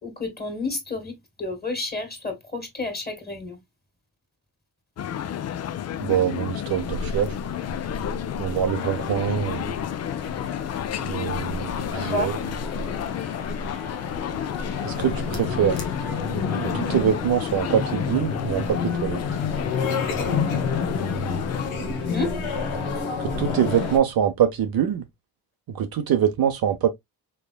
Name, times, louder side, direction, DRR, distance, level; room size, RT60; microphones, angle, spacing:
voice 1, 0.0-3.6 11.9-12.3 22.1-22.4, left 2 dB, 20° left, 1.8 m, -30 dB
sound 1, 5.0-21.7, left 10 dB, 35° left, 0.4 m, -31 dB
voice 2, 6.0-7.3 8.4-9.7 11.0-12.3 14.8-15.9 16.6-19.2 23.2-25.0 25.7-26.9, right 9 dB, 50° right, 0.6 m, -24 dB
sound 2, 6.7-24.0, left 4 dB, 80° left, 1.2 m, -30 dB
3.5 x 3.4 x 2.3 m
supercardioid pair, 60°, 48 cm